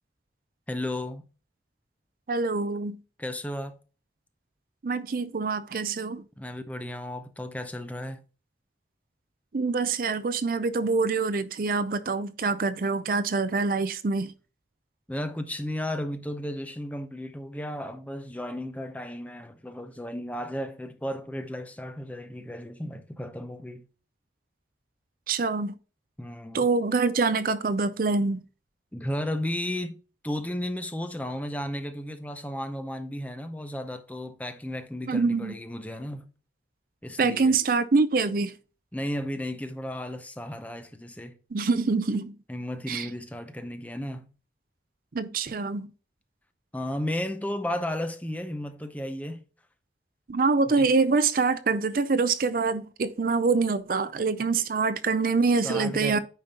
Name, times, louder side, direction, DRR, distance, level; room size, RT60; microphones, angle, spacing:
voice 1, 0.7-1.2 3.2-3.8 6.4-8.2 15.1-23.9 26.2-26.6 28.9-30.0 30.2-36.3 37.0-37.6 38.9-41.4 42.5-44.3 46.7-49.4 50.7-50.9 55.6-56.2, left 1 dB, 10° left, 0.6 m, -34 dB
voice 2, 2.3-3.0 4.8-6.2 9.5-14.3 25.3-25.7 26.5-28.4 35.1-35.5 37.2-38.5 41.5-42.4 42.9-43.1 45.1-45.9 50.3-56.2, right 4 dB, 50° right, 0.5 m, -25 dB
8.9 x 5.2 x 2.8 m
head